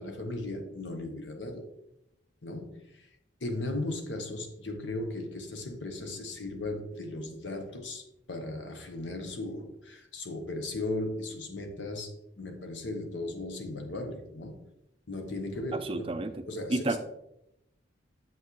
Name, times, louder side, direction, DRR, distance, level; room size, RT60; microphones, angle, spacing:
voice 1, 0.0-1.7 2.4-3.1 3.4-14.7 15.1-16.1 16.5-17.0, left 2 dB, 80° left, 5 dB, 1.0 m, -37 dB
voice 2, 15.7-16.4 16.7-17.0, right 2 dB, 30° right, 8 dB, 0.4 m, -30 dB
7.3 x 5.7 x 3.1 m, 0.84 s
head